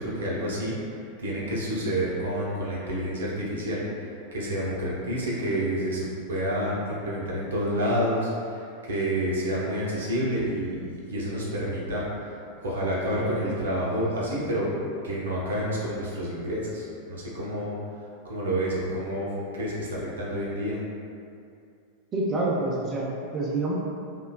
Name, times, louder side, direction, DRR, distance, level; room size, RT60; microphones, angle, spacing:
voice 1, 0.0-10.8 11.1-12.3 12.6-14.7 15.0-17.8 18.2-20.8, equal, 75° right, -5 dB, 0.6 m, -29 dB
voice 2, 22.1-23.8, right 2 dB, 30° right, -4 dB, 0.4 m, -27 dB
3.0 x 2.1 x 2.3 m, 2.4 s
hypercardioid pair, 95°, 0 cm